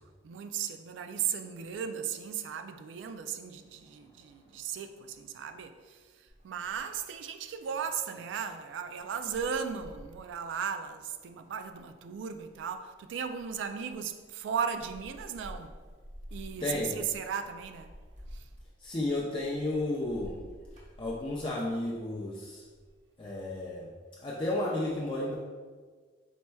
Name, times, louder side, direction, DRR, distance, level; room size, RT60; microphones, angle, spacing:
voice 1, 0.2-6.0 6.4-15.7 16.3-17.9 18.3-18.5, right 7 dB, 80° right, 0.3 m, -36 dB
sound 1, 6.3-23.0 23.3-23.8, equal, 45° right, 1.0 m, -52 dB
voice 2, 16.6-17.0 18.8-20.4 21.0-22.6 23.2-23.9 24.2-25.3, left 2 dB, 25° left, 0.4 m, -32 dB
4.4 x 4.2 x 2.2 m
head